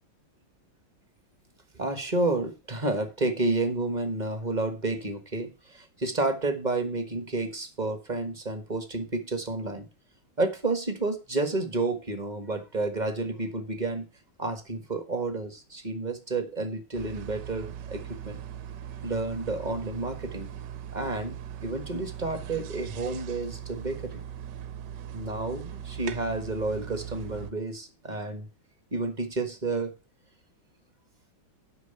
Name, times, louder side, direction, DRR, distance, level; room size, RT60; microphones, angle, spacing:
voice 1, 1.7-9.9 10.4-14.1 14.4-18.4 19.0-20.5 20.9-21.3 21.6-24.2 25.1-28.5 28.9-29.9, right 2 dB, 25° right, 8 dB, 1.4 m, -30 dB
sound 1, 16.9-27.5, right 9 dB, 65° right, 1.3 m, -40 dB
9.3 x 5.8 x 6.8 m, 0.31 s
omnidirectional pair, 2.3 m